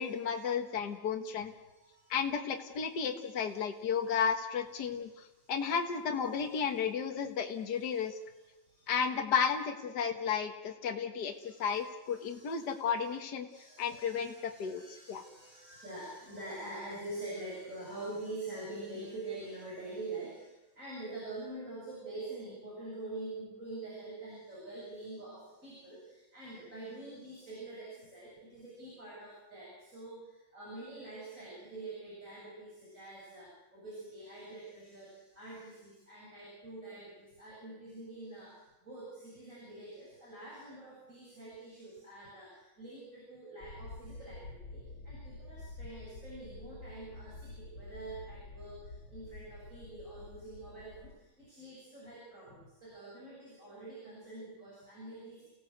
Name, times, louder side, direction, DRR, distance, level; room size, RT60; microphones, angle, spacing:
voice 1, 0.0-1.5 2.1-5.1 5.5-8.1 8.9-13.5 13.8-14.8 15.1-15.2, left 6 dB, 60° left, 4 dB, 2.0 m, -33 dB
voice 2, 1.6-2.2 2.8-3.8 4.9-5.5 7.5-8.9 11.2-13.1 13.5-55.4, right 2 dB, 40° right, -7 dB, 8.6 m, -46 dB
sound 1, 43.6-51.1, left 2 dB, 80° left, 3.3 m, -48 dB
30.0 x 17.0 x 8.1 m, 1.0 s
omnidirectional pair, 2.1 m